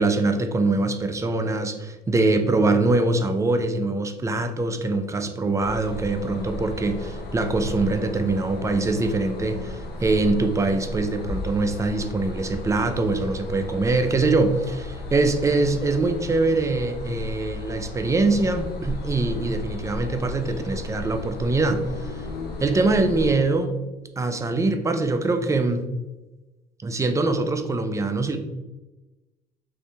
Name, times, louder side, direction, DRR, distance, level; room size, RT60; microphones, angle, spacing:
voice 1, 0.0-22.3 22.6-23.8 24.2-25.8 26.8-28.4, right 3 dB, 20° right, 7 dB, 0.3 m, -23 dB
sound 1, 5.6-23.3, left 2 dB, 70° left, 0.7 m, -34 dB
2.7 x 2.6 x 3.3 m, 1.1 s
cardioid pair, 110°, 17 cm